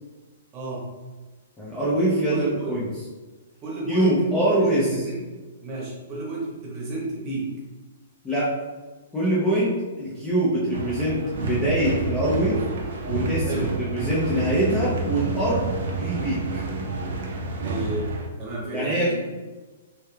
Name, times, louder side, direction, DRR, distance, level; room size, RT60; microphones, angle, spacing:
voice 1, 0.5-0.9 2.3-2.7 3.6-4.3 4.6-5.2 5.6-7.5 13.5-13.7 17.6-18.1 18.4-19.1, right 2 dB, 20° right, -5 dB, 0.9 m, -31 dB
voice 2, 1.6-2.9 3.9-4.9 8.2-8.5 9.1-12.6 13.1-16.4 18.7-19.1, right 1 dB, 10° left, -8 dB, 0.5 m, -24 dB
sound 1, 10.7-18.3, right 3 dB, 55° right, 0.6 m, -29 dB
3.2 x 3.2 x 3.3 m, 1.3 s
hypercardioid pair, 180°, 0 cm